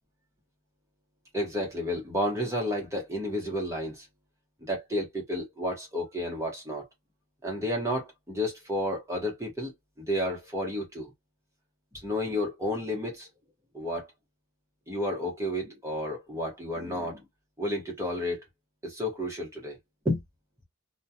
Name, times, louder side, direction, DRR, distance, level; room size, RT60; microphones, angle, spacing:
voice 1, 1.3-4.1 4.6-6.9 7.4-11.1 11.9-13.3 13.7-14.1 14.9-17.2 17.6-18.4 18.8-19.8 20.0-20.2, left 1 dB, 15° right, 1.0 m, -31 dB
2.3 x 2.3 x 2.6 m
head